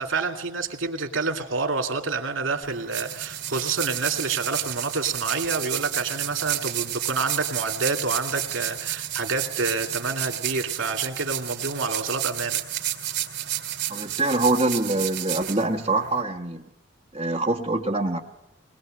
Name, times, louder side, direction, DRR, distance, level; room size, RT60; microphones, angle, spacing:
voice 1, 0.0-12.6, right 4 dB, 80° right, 4 dB, 2.5 m, -28 dB
sound 1, 2.6-16.2, right 12 dB, 55° right, 2.5 m, -31 dB
voice 2, 13.9-16.6 17.1-18.2, right 2 dB, 30° right, 0 dB, 1.2 m, -24 dB
21.5 x 20.5 x 7.7 m, 0.89 s
head